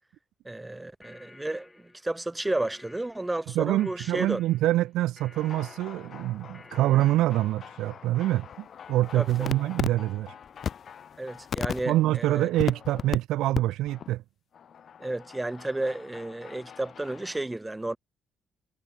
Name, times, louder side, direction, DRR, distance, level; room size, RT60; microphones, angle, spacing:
voice 1, 0.4-4.4 9.2-9.6 11.2-12.5 15.0-18.0, right 2 dB, 15° right, 0.6 m, -32 dB
sound 1, 0.8-7.7, left 2 dB, 20° left, 3.8 m, -54 dB
voice 2, 3.6-10.4 11.9-14.2, right 15 dB, 90° right, 0.4 m, -25 dB
sound 2, 5.3-13.2 13.5-13.6 13.9-14.1 14.5-17.4, left 8 dB, 55° left, 0.5 m, -38 dB
cardioid pair, 90°, 0 cm